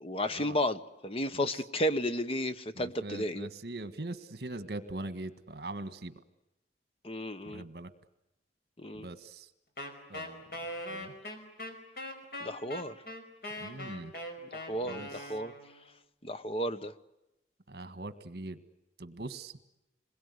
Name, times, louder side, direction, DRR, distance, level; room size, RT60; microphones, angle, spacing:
voice 1, 0.0-3.5 7.0-7.6 8.8-9.1 12.4-12.9 14.5-15.5 16.2-16.9, equal, 35° left, 11 dB, 1.1 m, -33 dB
voice 2, 2.8-6.1 7.5-7.9 8.9-9.5 10.1-10.6 10.9-11.1 13.6-14.1 14.8-15.3 17.7-18.6 19.0-19.5, right 2 dB, 65° right, 12 dB, 1.7 m, -41 dB
Wind instrument woodwind instrument, 9.8-15.8, left 1 dB, 60° left, 5.1 m, -41 dB
27.0 x 21.5 x 9.7 m, 0.91 s
head